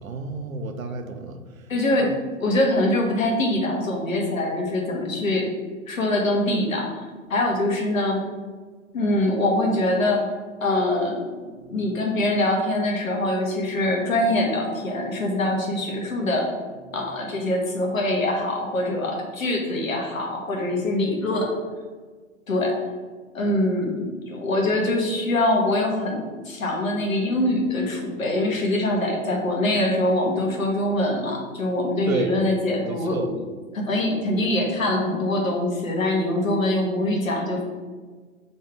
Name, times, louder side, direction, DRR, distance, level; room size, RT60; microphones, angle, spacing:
voice 1, 0.0-1.7 2.0-2.1 32.1-32.3 32.8-33.3, right 4 dB, 80° right, 6 dB, 0.6 m, -31 dB
voice 2, 1.7-2.1 2.4-5.5 5.9-7.0 7.3-8.2 8.9-10.3 10.6-16.5 16.9-21.6 22.5-22.8 23.3-33.2 33.7-37.6, left 1 dB, 75° left, 0 dB, 1.1 m, -23 dB
3.2 x 2.7 x 4.6 m, 1.4 s
figure-of-eight pair, 110°, 40 cm